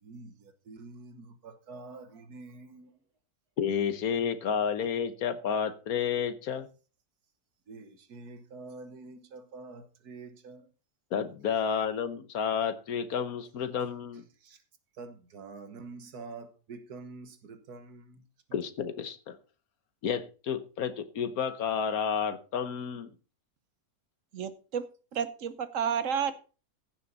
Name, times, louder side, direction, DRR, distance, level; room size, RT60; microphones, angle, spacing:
voice 1, 0.0-3.0 7.7-10.7 14.4-14.6 14.9-18.6, right 3 dB, 85° right, 1.8 m, -47 dB
voice 2, 3.6-6.7 11.1-14.2 18.5-19.4 20.0-23.1, left 7 dB, 75° left, 1.4 m, -31 dB
voice 3, 24.3-24.8 25.1-26.5, right 7 dB, 60° right, 1.2 m, -31 dB
15.5 x 7.0 x 4.0 m
omnidirectional pair, 1.6 m